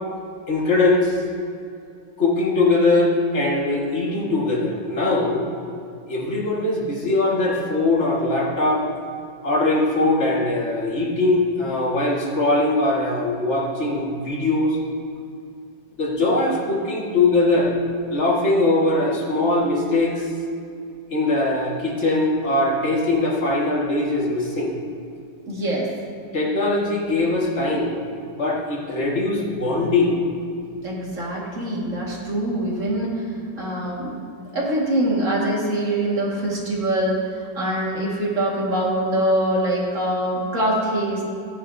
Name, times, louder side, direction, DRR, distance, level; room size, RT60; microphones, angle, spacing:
voice 1, 0.5-1.2 2.2-5.5 6.1-8.9 9.4-14.8 16.0-17.7 18.1-20.3 21.1-24.7 26.3-27.9 28.2-30.2, left 2 dB, 40° left, -3 dB, 1.9 m, -21 dB
voice 2, 25.5-25.9 30.8-33.2 33.6-34.2 34.5-41.2, right 1 dB, 45° right, -4 dB, 2.3 m, -24 dB
17.0 x 9.8 x 2.7 m, 2.5 s
omnidirectional pair, 1.9 m